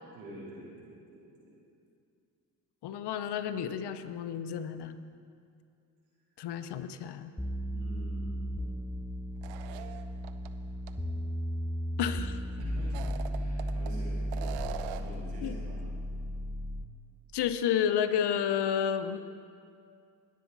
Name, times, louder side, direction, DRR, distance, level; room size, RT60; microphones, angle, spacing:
voice 1, 0.1-1.5 7.7-8.4 9.5-9.9 12.6-13.0 13.3-14.5 14.9-15.8, right 1 dB, 90° right, -7 dB, 3.4 m, -47 dB
voice 2, 2.8-5.0 6.4-7.3 12.0-12.4 15.4-15.5 17.3-19.2, left 8 dB, 55° left, 10 dB, 0.9 m, -31 dB
sound 1, 7.4-17.0, equal, 5° left, 0.6 m, -35 dB
sound 2, 9.4-10.5 10.9-11.0 12.8-13.9 14.3-15.2, right 11 dB, 70° right, 0.8 m, -42 dB
21.0 x 7.5 x 4.1 m, 2.4 s
hypercardioid pair, 55°, 48 cm